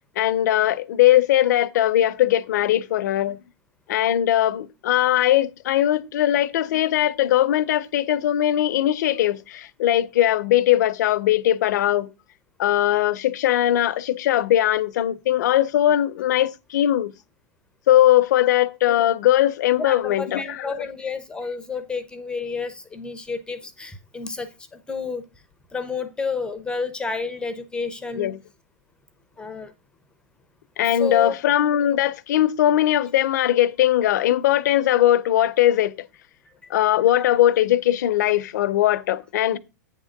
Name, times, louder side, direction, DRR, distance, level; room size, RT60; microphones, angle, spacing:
voice 1, 0.2-3.4 3.9-12.1 12.6-17.1 17.9-20.8 28.1-28.4 30.8-35.9 36.7-39.6, left 13 dB, 65° left, 0.7 m, -20 dB
voice 2, 19.7-25.2 25.7-28.3 29.4-29.7 31.0-31.3 36.6-36.7, left 4 dB, 10° left, 0.7 m, -30 dB
8.7 x 3.7 x 6.5 m
hypercardioid pair, 140°, 10 cm